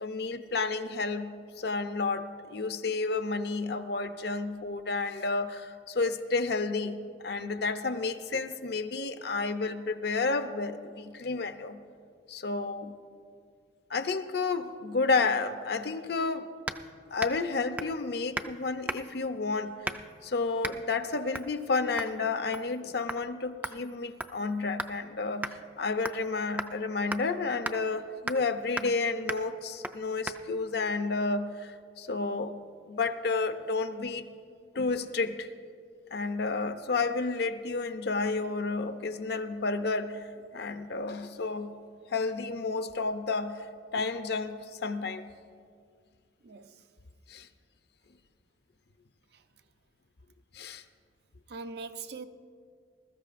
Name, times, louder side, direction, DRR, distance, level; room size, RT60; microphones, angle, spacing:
voice 1, 0.0-11.8 12.3-12.9 13.9-16.5 17.1-19.9 20.2-32.6 32.9-34.2 34.7-35.5 36.1-41.7 42.1-43.6 43.9-45.2 47.3-47.5 50.5-50.8, left 3 dB, 60° left, 0.6 m, -31 dB
sound 1, 16.7-16.9 17.2-17.5 17.8-18.0 18.3-18.5 18.9-19.2 19.8-20.2 20.6-20.8 21.3-21.5 22.0-22.2 22.5-22.8 23.1-23.2 23.6-25.0 25.4-25.6 26.1-26.3 26.6-26.7 27.1-27.2 27.6-27.8 28.3-28.5 28.8-29.0 29.3-29.5 29.8-30.0 30.3-30.4, right 2 dB, 10° right, 0.3 m, -36 dB
voice 2, 46.4-46.8 49.3-49.4 51.5-52.2, right 4 dB, 60° right, 0.5 m, -41 dB
20.5 x 13.5 x 2.5 m
head